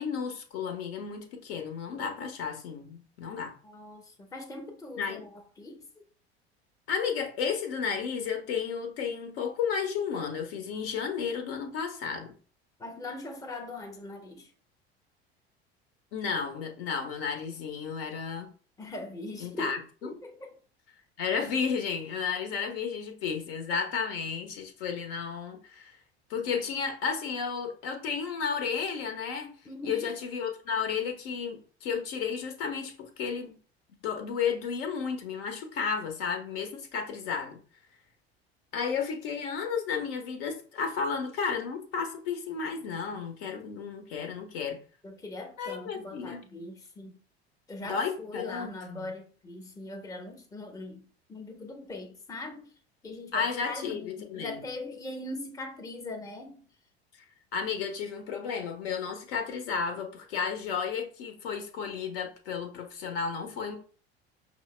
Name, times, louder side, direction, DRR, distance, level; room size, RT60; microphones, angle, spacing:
voice 1, 0.0-3.5 5.0-5.2 6.9-12.3 16.1-18.5 19.4-20.1 21.2-26.0 26.3-29.5 29.8-33.5 34.0-37.6 38.7-44.8 45.6-46.4 47.8-49.1 53.3-54.6 57.5-63.8, left 6 dB, 60° left, 0.9 m, -33 dB
voice 2, 3.6-5.8 12.8-14.5 18.8-20.6 29.6-30.1 45.0-47.2 47.7-51.0 51.3-52.7 53.0-56.6, left 2 dB, 10° left, 0.7 m, -41 dB
5.4 x 2.0 x 3.1 m
figure-of-eight pair, 70°, 32 cm